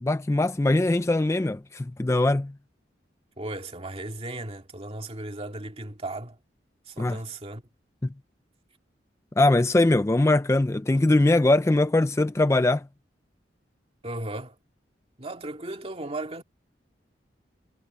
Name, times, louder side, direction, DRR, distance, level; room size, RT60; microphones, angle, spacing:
voice 1, 0.0-2.5 7.0-7.2 9.4-12.9, left 2 dB, 15° left, 0.4 m, -21 dB
voice 2, 3.4-6.4 6.9-7.6 14.0-14.6 15.2-16.4, right 2 dB, 30° right, 2.1 m, -36 dB
head